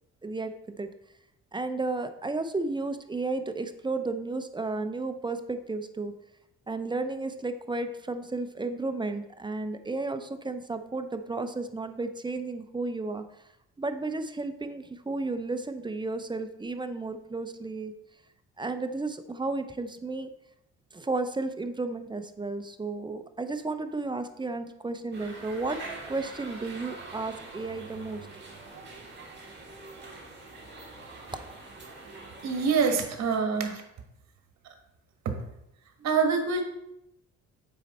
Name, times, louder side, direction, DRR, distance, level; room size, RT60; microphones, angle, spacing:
voice 1, 0.2-0.9 1.5-6.1 6.7-13.2 13.8-17.9 18.6-20.3 20.9-25.8 26.1-28.2, right 3 dB, 15° right, 9 dB, 0.6 m, -33 dB
sound 1, 25.1-33.0, right 3 dB, 35° right, 2.2 m, -44 dB
voice 2, 32.4-33.8 34.6-34.7 35.2-35.3 36.0-36.6, right 5 dB, 60° right, 4 dB, 1.6 m, -25 dB
7.5 x 5.3 x 4.2 m, 0.83 s
cardioid pair, 90°, 30 cm